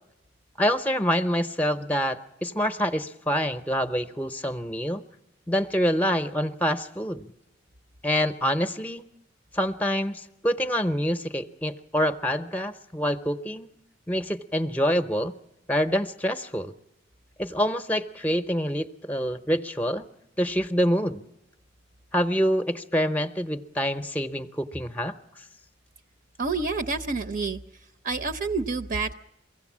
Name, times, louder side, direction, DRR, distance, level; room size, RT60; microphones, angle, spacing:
voice 1, 0.6-5.0 5.5-7.3 8.0-9.0 9.5-13.7 14.1-15.3 15.7-16.7 17.4-20.1 20.4-21.2 22.1-25.1, equal, 10° left, 10 dB, 0.7 m, -26 dB
voice 2, 26.4-27.6 28.0-29.1, right 4 dB, 50° right, 7 dB, 0.6 m, -28 dB
23.5 x 16.0 x 7.3 m, 0.90 s
head